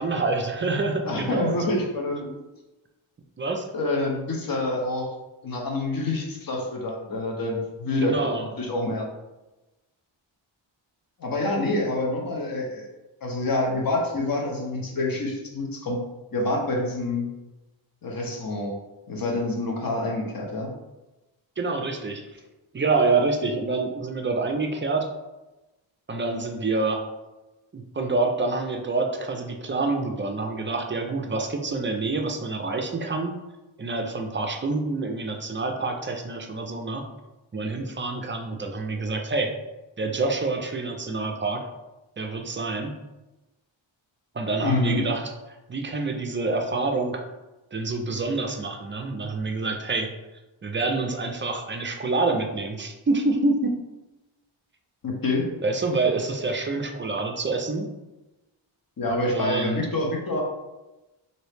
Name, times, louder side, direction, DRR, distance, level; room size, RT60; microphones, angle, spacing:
voice 1, 0.0-1.6 3.4-3.7 8.0-8.4 21.6-22.3 22.7-25.1 26.1-27.0 27.7-33.4 33.8-37.0 37.5-39.5 40.0-41.7 42.2-42.9 44.3-45.2 45.7-47.2 47.7-50.1 50.6-53.7 55.6-57.9 59.2-59.9, right 3 dB, 25° right, 3 dB, 0.3 m, -27 dB
voice 2, 1.1-2.3 3.7-5.1 5.4-8.1 8.6-9.1 11.2-12.9 13.2-16.0 16.3-17.3 18.0-18.8 19.1-20.7 44.6-45.0 55.0-55.5 59.0-60.4, left 2 dB, 45° left, 0 dB, 0.8 m, -27 dB
2.9 x 2.7 x 3.3 m, 1.0 s
wide cardioid pair, 110°, 49 cm